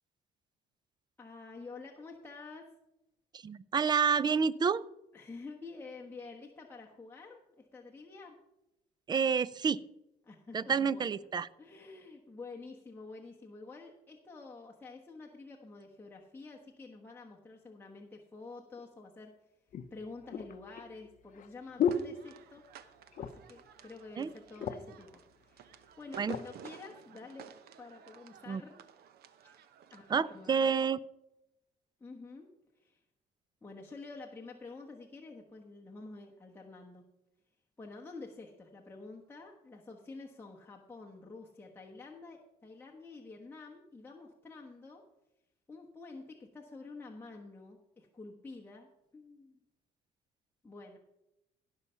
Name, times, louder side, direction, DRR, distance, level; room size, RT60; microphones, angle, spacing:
voice 1, 1.2-2.7 5.1-8.4 10.2-11.3 11.6-19.3 19.9-22.6 23.2-28.8 29.4-29.6 29.9-30.7 32.0-32.5 32.8-33.0 33.6-37.0 37.8-45.0 45.7-48.9 49.1-49.6 50.6-51.0, left 3 dB, 10° left, -1 dB, 1.2 m, -49 dB
voice 2, 3.4-4.8 9.1-9.8 10.5-11.5 24.2-24.3 26.2-26.4 28.5-28.6 30.1-31.0, right 6 dB, 25° right, 20 dB, 0.4 m, -29 dB
sound 1, 18.8-18.9 19.7-22.8 23.1-23.6 23.9-24.0 24.3-25.0 25.7-26.5 27.1-27.3, left 6 dB, 50° left, 0.7 m, -36 dB
sound 2, 21.7-30.7, right 8 dB, 65° right, 0.9 m, -55 dB
16.0 x 5.7 x 5.6 m, 0.90 s
cardioid pair, 110°, 17 cm